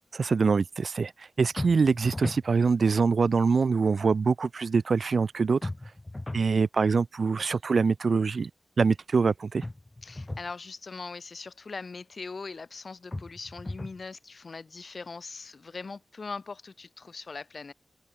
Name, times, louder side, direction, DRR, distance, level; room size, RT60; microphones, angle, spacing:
voice 1, 0.1-5.7 6.3-8.5 8.8-9.6, right 5 dB, 70° right, 0.7 m, -24 dB
sound 1, 1.6-2.5 5.6-6.5 9.6-10.5 13.1-14.0, left 2 dB, 20° left, 2.9 m, -37 dB
voice 2, 10.0-17.7, left 4 dB, 55° left, 7.5 m, -41 dB
open air
wide cardioid pair, 115°, 0 cm